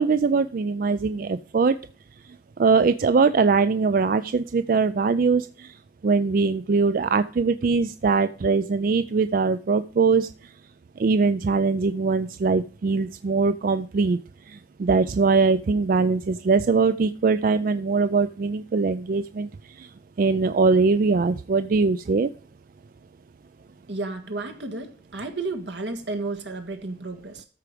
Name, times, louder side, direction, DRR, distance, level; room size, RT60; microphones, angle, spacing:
voice 1, 0.0-1.8 2.6-5.7 6.0-10.3 11.0-14.2 14.5-19.5 19.8-19.9 20.2-22.3, right 4 dB, 50° right, 12 dB, 0.4 m, -22 dB
voice 2, 23.9-27.5, right 3 dB, 80° right, 5 dB, 1.6 m, -32 dB
13.5 x 4.8 x 5.0 m, 0.41 s
head